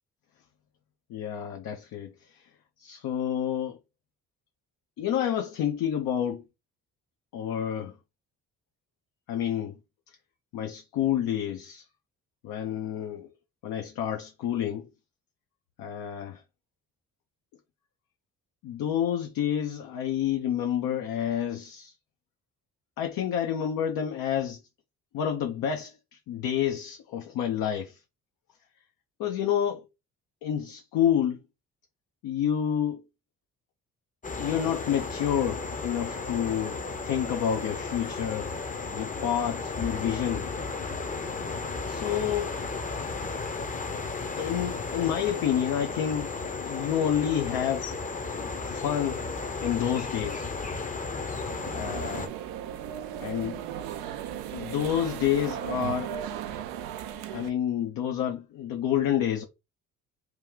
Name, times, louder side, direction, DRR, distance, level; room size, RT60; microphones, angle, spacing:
voice 1, 1.1-2.4 2.8-3.8 5.0-6.4 7.3-7.9 9.3-9.7 10.5-11.8 12.4-13.3 13.6-14.9 15.8-16.4 18.6-21.9 23.0-24.6 25.1-28.0 29.2-29.9 30.4-31.4 32.2-33.0 34.4-38.5 38.9-40.5 41.9-42.6 44.4-46.3 46.7-47.9 48.4-49.2 49.6-50.5 51.7-52.3 53.2-53.6 54.5-56.1 57.3-59.4, left 9 dB, 65° left, 0.7 m, -29 dB
sound 1, 34.2-52.3, left 4 dB, 20° left, 0.7 m, -34 dB
sound 2, 51.5-57.5, right 10 dB, 80° right, 0.6 m, -36 dB
3.0 x 2.3 x 3.6 m
hypercardioid pair, 50°, 37 cm